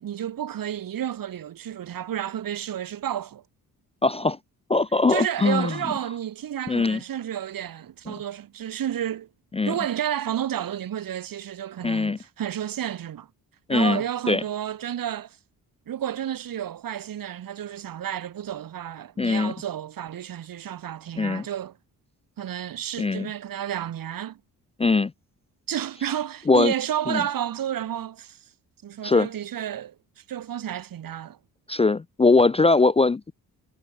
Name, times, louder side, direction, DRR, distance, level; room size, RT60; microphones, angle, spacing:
voice 1, 0.0-3.4 5.1-9.3 9.7-13.3 13.7-15.4 15.9-21.7 22.4-24.4 25.7-28.4 28.8-30.0 30.3-31.4, right 10 dB, 60° right, 1.6 m, -31 dB
voice 2, 4.0-4.4 4.7-5.8 6.7-7.0 9.5-9.7 11.8-12.2 13.7-14.0 14.3-14.4 19.2-19.5 21.2-21.4 23.0-23.3 24.8-25.1 26.5-26.7 27.1-27.2 29.0-29.3 31.7-33.3, left 3 dB, 15° left, 0.4 m, -21 dB
cardioid pair, 90°, 38 cm